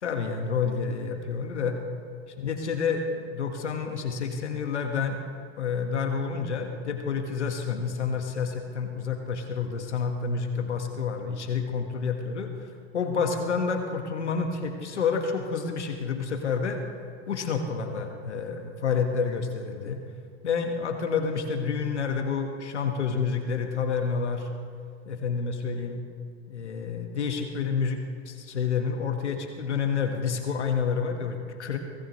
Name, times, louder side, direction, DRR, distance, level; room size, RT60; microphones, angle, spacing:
voice 1, 0.0-1.8 2.4-5.2 5.6-12.7 12.9-16.8 17.3-20.0 20.4-24.5 25.1-26.0 26.5-31.8, left 5 dB, 90° left, 5 dB, 1.5 m, -29 dB
23.5 x 18.0 x 3.1 m, 2.2 s
hypercardioid pair, 95°, 33 cm